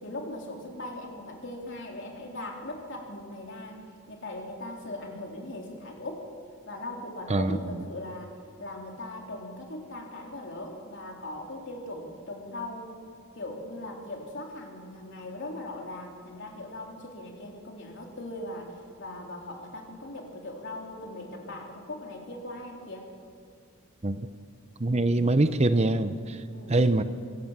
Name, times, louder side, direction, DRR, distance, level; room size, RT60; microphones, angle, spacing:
voice 1, 0.0-3.8 4.1-6.3 6.7-12.9 13.3-23.1 24.9-25.2 26.5-26.8, left 1 dB, 60° left, 0 dB, 3.7 m, -39 dB
voice 2, 24.8-26.4 26.7-27.0, right 2 dB, 30° right, 11 dB, 0.7 m, -24 dB
25.0 x 17.0 x 7.5 m, 2.3 s
head